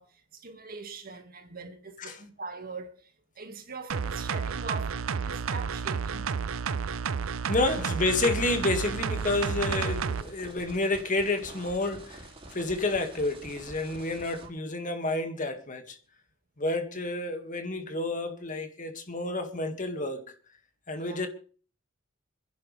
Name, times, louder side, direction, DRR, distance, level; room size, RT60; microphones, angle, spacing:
voice 1, 0.0-6.3 6.8-6.9 7.6-8.2 14.4-14.5 21.0-21.2, right 3 dB, 45° right, 1.9 m, -42 dB
sound 1, 3.9-10.2 10.6-10.7, right 6 dB, 90° right, 0.6 m, -31 dB
voice 2, 7.5-12.2 12.5-16.0 16.6-20.3 20.9-21.3, left 2 dB, 40° left, 2.0 m, -30 dB
il beat, 7.7-14.5, right 1 dB, 30° right, 4.1 m, -48 dB
27.0 x 10.5 x 3.3 m
head